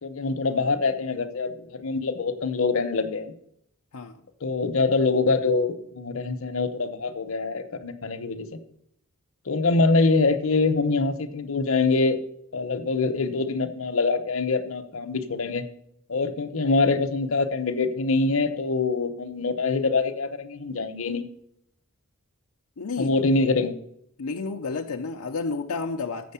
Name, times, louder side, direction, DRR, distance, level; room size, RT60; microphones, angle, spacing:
voice 1, 0.0-3.3 4.4-8.6 9.5-12.2 12.5-15.6 16.1-21.3 23.0-23.7, left 3 dB, 65° left, 0.9 m, -24 dB
voice 2, 22.8-23.2 24.2-26.3, left 4 dB, 80° left, 0.6 m, -31 dB
7.7 x 6.3 x 7.0 m
head